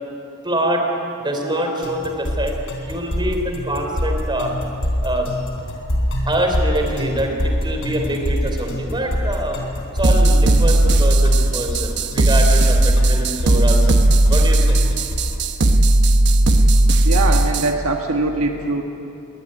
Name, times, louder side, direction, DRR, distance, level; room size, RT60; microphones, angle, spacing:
voice 1, 0.4-0.9 1.2-4.5 5.0-5.3 6.3-9.6 9.9-14.0 14.3-14.8, right 1 dB, 20° right, 3 dB, 3.5 m, -24 dB
sound 1, 1.8-15.5, equal, 60° left, 3.8 m, -25 dB
sound 2, 10.0-17.7, right 1 dB, 55° right, 1.0 m, -15 dB
voice 2, 17.0-18.8, right 2 dB, 70° right, 3 dB, 1.4 m, -22 dB
22.5 x 17.5 x 10.0 m, 2.8 s
head